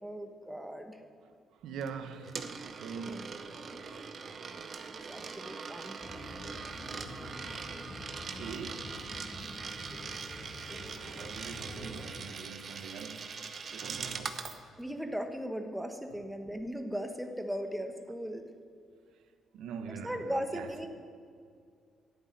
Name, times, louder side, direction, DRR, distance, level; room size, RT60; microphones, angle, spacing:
voice 1, 0.0-1.0 3.1-4.3 4.5-6.0 14.8-18.4 19.9-20.9, equal, 5° right, 1.3 m, -38 dB
voice 2, 1.6-2.4 2.8-3.3 3.9-4.1 8.3-9.0 10.8-13.3 13.7-14.4 19.5-20.2 20.5-20.7, right 6 dB, 80° right, 1.0 m, -43 dB
Coin (dropping), 1.8-14.6, right 5 dB, 50° right, 1.0 m, -42 dB
sound 1, 6.0-12.1, left 1 dB, 15° left, 2.6 m, -46 dB
11.0 x 8.1 x 9.7 m
cardioid pair, 90°, 0 cm